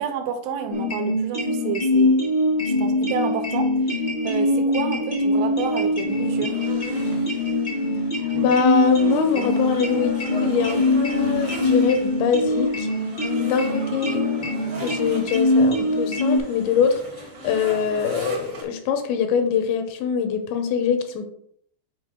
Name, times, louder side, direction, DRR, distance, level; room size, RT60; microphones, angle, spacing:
voice 1, 0.0-2.2 2.8-6.6, right 7 dB, 90° right, 5 dB, 3.4 m, -30 dB
sound 1, 0.7-16.4, left 2 dB, 40° left, 0.7 m, -23 dB
sound 2, 5.4-18.6, right 1 dB, 60° right, 1.0 m, -38 dB
voice 2, 8.4-12.9 13.4-14.2 14.8-17.0 17.4-21.3, left 6 dB, 80° left, 7 dB, 2.9 m, -23 dB
8.2 x 4.9 x 3.7 m, 0.66 s
omnidirectional pair, 5.4 m